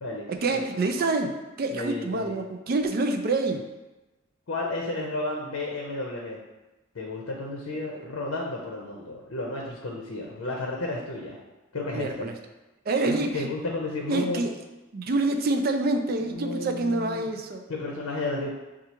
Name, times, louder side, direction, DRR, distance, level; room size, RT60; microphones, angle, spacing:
voice 1, 0.3-3.7 7.7-8.1 11.9-12.4 12.9-13.5 14.1-14.6 14.9-17.7, right 2 dB, 45° right, 5 dB, 0.4 m, -27 dB
voice 2, 1.7-2.3 4.5-6.4 6.9-11.4 11.7-12.3 13.1-14.4 16.2-17.3 17.7-18.5, left 2 dB, 75° left, -1 dB, 0.7 m, -32 dB
6.6 x 2.4 x 2.9 m, 1.1 s
head